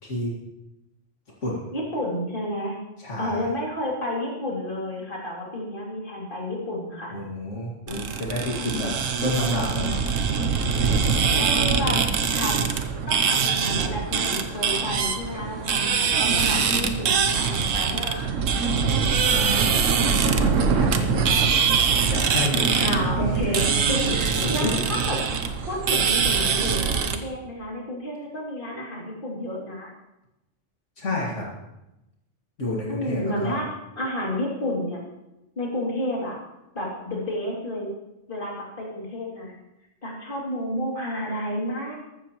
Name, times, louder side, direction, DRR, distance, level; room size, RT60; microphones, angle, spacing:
voice 1, 0.0-0.3 1.4-1.6 3.0-3.4 7.1-10.0 19.2-19.7 20.2-21.4 22.1-22.9 23.2-23.6 24.0-24.7 31.0-31.5 32.6-33.6, left 1 dB, 70° left, -4 dB, 2.5 m, -29 dB
voice 2, 1.7-2.7 3.2-7.2 10.9-12.0 12.3-12.7 13.1-18.3 22.8-25.2 25.7-29.9 32.9-33.7 34.0-35.0 35.6-36.4 36.7-37.9 38.3-39.5 40.0-42.0, left 1 dB, 45° left, -4 dB, 3.0 m, -30 dB
sound 1, 7.9-27.2, right 6 dB, 80° right, 1.3 m, -23 dB
14.5 x 13.0 x 3.1 m, 0.93 s
omnidirectional pair, 1.3 m